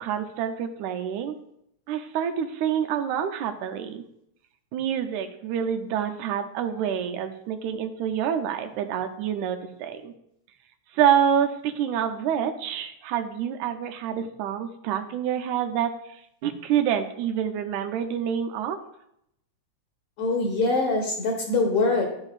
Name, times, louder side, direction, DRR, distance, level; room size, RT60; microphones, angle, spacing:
voice 1, 0.0-1.4 1.9-4.0 4.7-10.1 10.9-18.8, right 9 dB, 85° right, 6 dB, 2.1 m, -27 dB
voice 2, 20.2-22.0, left 3 dB, 60° left, 0 dB, 1.8 m, -23 dB
10.5 x 6.1 x 2.4 m, 0.76 s
omnidirectional pair, 3.3 m